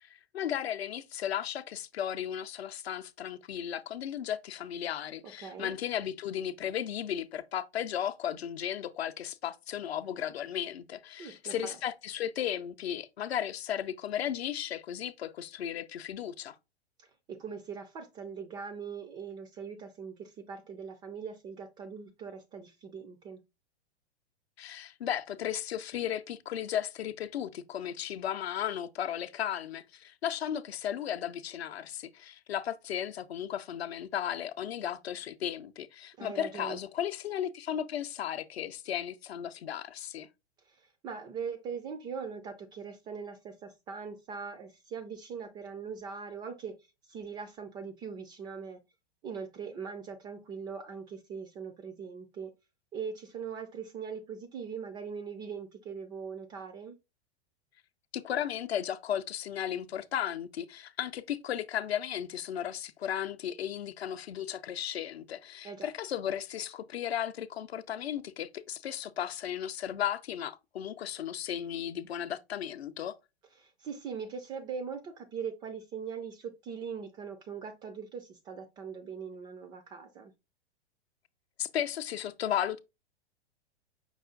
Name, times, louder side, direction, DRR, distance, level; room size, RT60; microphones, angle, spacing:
voice 1, 0.0-16.6 24.6-40.3 58.1-73.2 81.6-82.8, left 10 dB, 70° left, 0.6 m, -35 dB
voice 2, 5.2-5.7 11.2-11.5 17.0-23.4 36.2-36.8 40.6-46.8 47.1-48.8 49.2-52.5 52.9-57.0 65.6-65.9 73.6-80.3, right 6 dB, 15° right, 0.3 m, -41 dB
5.4 x 2.4 x 3.7 m
figure-of-eight pair, 105°, 32 cm